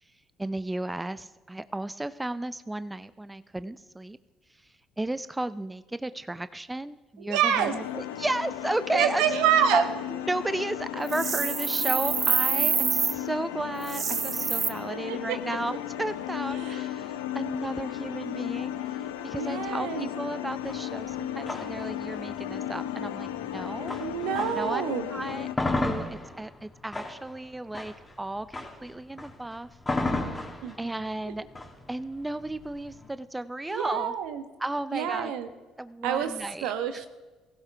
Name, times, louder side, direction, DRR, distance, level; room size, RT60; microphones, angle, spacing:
voice 1, 0.4-4.2 5.0-9.2 9.7-9.8 10.1-24.0 24.4-24.8 25.1-28.5 28.8-29.7 30.8-31.4 31.9-34.1 34.6-35.3 35.8-37.1, right 2 dB, 15° right, 14 dB, 0.5 m, -33 dB
voice 2, 7.2-7.7 8.9-9.8 14.9-15.2 16.6-16.8 17.9-18.0 19.4-20.1 23.6-25.1 30.6-30.7 33.7-34.4 34.9-35.5 36.0-36.3 36.6-37.1, right 9 dB, 75° right, 9 dB, 1.1 m, -27 dB
sound 1, 7.5-25.5, left 11 dB, 80° left, 0.6 m, -35 dB
sound 2, 11.1-13.1 13.8-14.7, right 6 dB, 45° right, 0.8 m, -26 dB
sound 3, 20.6-24.8 25.2-33.1, left 2 dB, 20° left, 2.7 m, -34 dB
18.5 x 16.0 x 3.4 m, 1.2 s
hypercardioid pair, 55°, 0 cm